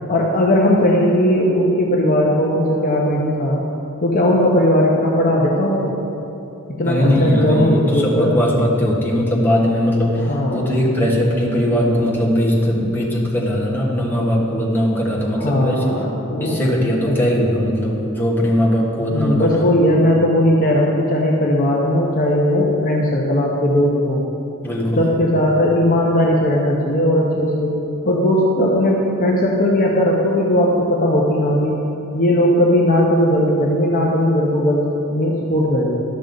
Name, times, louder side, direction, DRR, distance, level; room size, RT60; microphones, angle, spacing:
voice 1, 0.1-3.6 4.0-6.0 6.8-8.4 10.2-10.8 15.3-16.6 17.1-17.4 19.1-24.2 25.0-27.8 28.0-31.8 32.1-35.9, left 1 dB, 40° left, -2 dB, 0.8 m, -17 dB
voice 2, 6.8-15.8 16.4-19.6 24.6-25.0, equal, 10° left, -5 dB, 1.5 m, -19 dB
12.5 x 6.2 x 3.9 m, 2.9 s
head